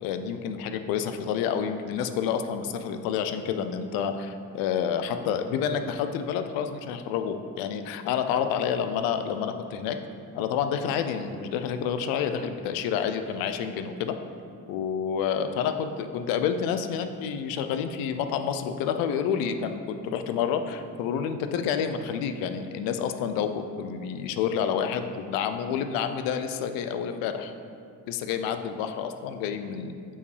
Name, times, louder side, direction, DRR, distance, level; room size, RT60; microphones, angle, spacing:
voice 1, 0.0-10.0 10.3-14.2 14.7-27.5 28.1-29.9, left 7 dB, 90° left, 8 dB, 0.5 m, -29 dB
5.3 x 4.8 x 4.8 m, 2.4 s
supercardioid pair, 80°, 34 cm